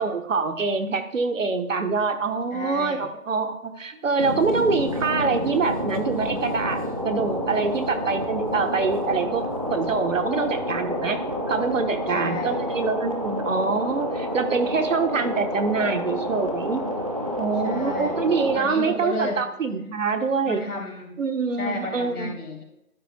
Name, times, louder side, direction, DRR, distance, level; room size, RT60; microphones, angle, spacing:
voice 1, 0.0-9.4 9.7-11.2 11.5-16.8 17.4-20.6 21.2-22.3, right 4 dB, 60° right, 7 dB, 1.2 m, -25 dB
voice 2, 2.5-3.1 12.1-12.7 17.5-18.2 18.5-19.5 20.4-21.2 21.6-22.6, left 2 dB, 90° left, -2 dB, 3.4 m, -33 dB
sound 1, 4.2-18.6, equal, 25° right, 0.5 m, -29 dB
12.0 x 9.3 x 2.2 m, 0.86 s
hypercardioid pair, 160°, 43 cm